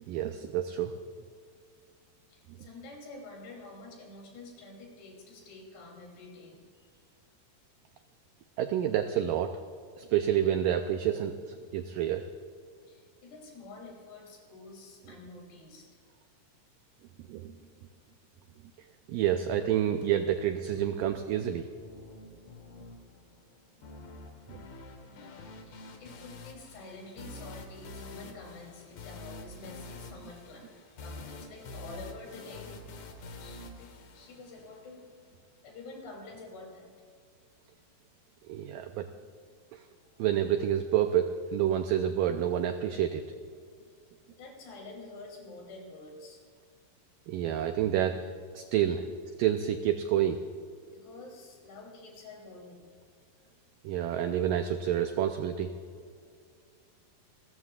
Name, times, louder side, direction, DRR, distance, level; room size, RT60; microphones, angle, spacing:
voice 1, 0.1-0.9 8.6-9.6 10.0-12.3 17.3-17.5 19.1-21.7 24.5-24.6 38.5-39.1 39.7-39.8 40.2-43.2 47.3-48.2 48.5-49.1 49.4-50.4 53.8-55.7, right 10 dB, 85° right, 7 dB, 1.9 m, -28 dB
voice 2, 2.3-6.6 10.4-10.5 12.8-15.9 19.4-19.5 20.3-20.4 25.0-32.8 33.4-35.1 35.6-36.9 40.0-40.2 40.5-40.6 44.3-46.4 48.2-48.3 48.8-49.1 50.9-52.8, left 3 dB, 90° left, -1 dB, 5.2 m, -48 dB
sound 1, 20.0-35.0, left 2 dB, 60° left, 2.2 m, -47 dB
28.5 x 14.0 x 2.4 m, 2.2 s
omnidirectional pair, 4.6 m